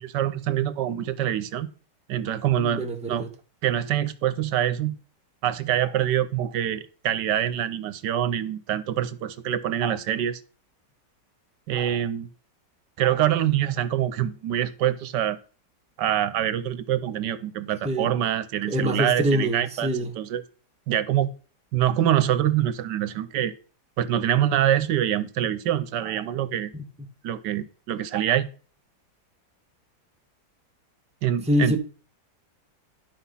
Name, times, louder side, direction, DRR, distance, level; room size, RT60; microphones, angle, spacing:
voice 1, 0.0-1.7 2.1-3.2 3.6-5.0 5.4-10.4 11.7-12.3 13.0-15.4 16.0-20.4 20.9-21.3 21.7-23.5 24.0-26.7 27.2-28.5 31.2-31.8, right 11 dB, 80° right, 1.3 m, -25 dB
voice 2, 2.6-3.3 17.8-18.1 18.6-20.1 26.7-26.8 31.5-31.8, equal, 5° right, 1.0 m, -25 dB
11.0 x 6.0 x 5.6 m
omnidirectional pair, 1.9 m